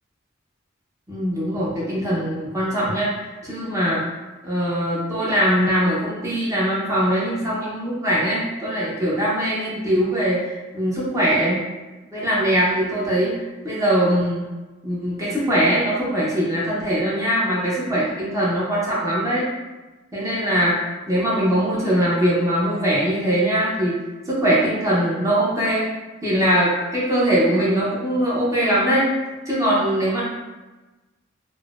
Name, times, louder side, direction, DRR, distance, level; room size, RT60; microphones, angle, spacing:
voice 1, 1.1-4.0 4.4-11.6 12.1-14.4 14.8-19.4 20.1-20.8 21.1-24.0 24.3-25.8 26.2-29.1 29.5-30.2, equal, 15° right, -7 dB, 0.6 m, -21 dB
3.8 x 2.0 x 2.3 m, 1.2 s
head